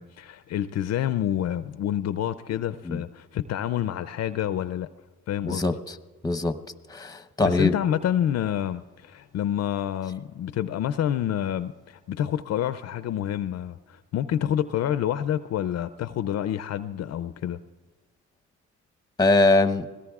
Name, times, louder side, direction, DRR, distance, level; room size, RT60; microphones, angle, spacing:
voice 1, 0.0-4.9 5.3-5.6 7.4-17.6, left 10 dB, 55° left, 13 dB, 0.5 m, -28 dB
voice 2, 6.2-6.6 6.9-7.7 19.2-19.9, left 2 dB, 10° left, 9 dB, 0.9 m, -22 dB
25.5 x 17.5 x 2.4 m, 1.4 s
cardioid pair, 90°, 30 cm